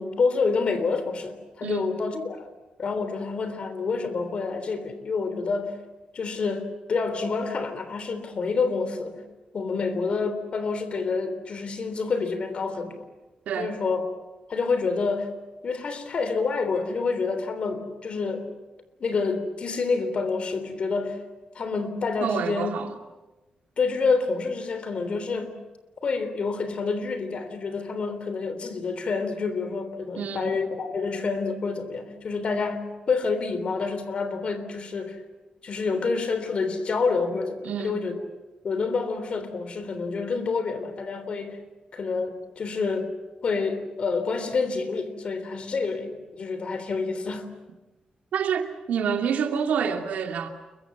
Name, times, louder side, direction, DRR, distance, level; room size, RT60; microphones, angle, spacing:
voice 1, 0.0-2.5 2.8-5.8 6.1-9.2 9.5-13.1 13.6-14.1 14.5-15.4 15.6-18.5 19.0-21.2 21.6-22.8 23.8-25.6 26.0-35.2 35.6-38.2 38.6-41.6 41.9-43.1 43.4-47.5, left 4 dB, 50° left, 3.5 m, -28 dB
voice 2, 1.6-2.0 13.5-13.7 22.2-22.9 30.1-30.5 37.6-38.0 48.3-50.5, right 7 dB, 90° right, 2.5 m, -28 dB
29.5 x 23.0 x 7.2 m
wide cardioid pair, 125°, 2 cm